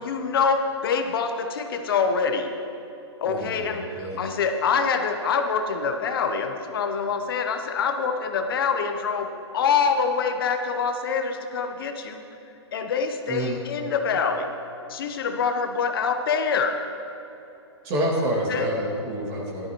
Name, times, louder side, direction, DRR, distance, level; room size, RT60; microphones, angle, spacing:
voice 1, 0.0-2.5 3.2-12.2 12.7-14.5 14.9-16.8 18.5-18.7, left 5 dB, 50° left, 6 dB, 0.9 m, -25 dB
voice 2, 3.3-4.2 13.3-13.6 17.8-19.7, equal, 30° right, -2 dB, 2.3 m, -28 dB
14.0 x 12.0 x 3.1 m, 2.9 s
hypercardioid pair, 150°, 15 cm